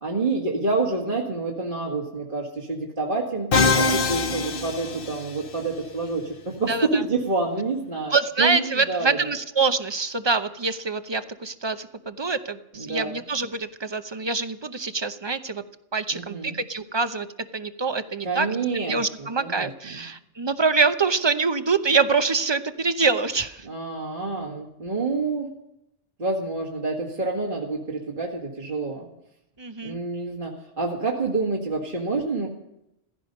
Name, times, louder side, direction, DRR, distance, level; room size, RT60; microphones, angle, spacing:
voice 1, 0.0-3.5 3.8-8.1 8.4-9.1 12.8-13.2 16.1-16.6 18.2-19.7 19.9-20.0 23.7-25.5 26.2-29.1 29.8-32.5, right 3 dB, 45° right, -2 dB, 2.1 m, -28 dB
Musical instrument, 3.5-5.6, left 3 dB, 50° left, 1.1 m, -23 dB
voice 2, 6.7-7.0 8.1-15.6 15.9-17.3 17.5-18.5 18.9-23.7 29.6-30.0, right 4 dB, 25° right, 10 dB, 0.7 m, -25 dB
16.0 x 15.5 x 5.5 m, 0.84 s
omnidirectional pair, 1.2 m